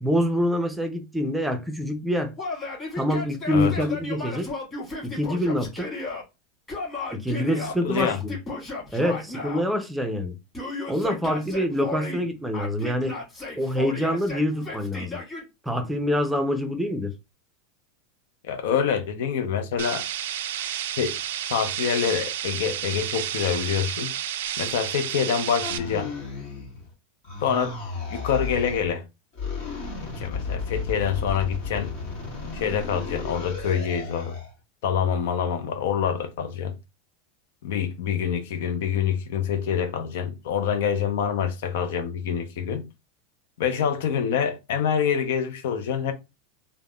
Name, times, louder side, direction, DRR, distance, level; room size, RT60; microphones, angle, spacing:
voice 1, 0.0-2.3 3.0-4.5 5.0-5.9 7.1-8.3 8.9-10.4 10.9-13.2 13.6-15.2 15.6-17.1, equal, 5° right, 0.5 m, -26 dB
Yell, 2.4-6.2 6.7-9.6 10.5-12.2 12.5-15.4, left 3 dB, 20° left, 1.5 m, -34 dB
voice 2, 7.8-8.2 18.4-20.0 21.0-21.2 21.5-24.1 24.6-26.1 27.4-27.8 28.1-29.0 30.2-31.9 32.5-34.3 34.8-36.8 37.6-42.9 43.6-46.1, left 7 dB, 75° left, 0.5 m, -26 dB
sound 1, 19.8-25.8, right 11 dB, 80° right, 0.3 m, -31 dB
sound 2, 25.6-26.9 27.2-28.9 29.3-34.5, left 4 dB, 60° left, 1.5 m, -33 dB
3.3 x 2.1 x 2.3 m
supercardioid pair, 135°, 0 cm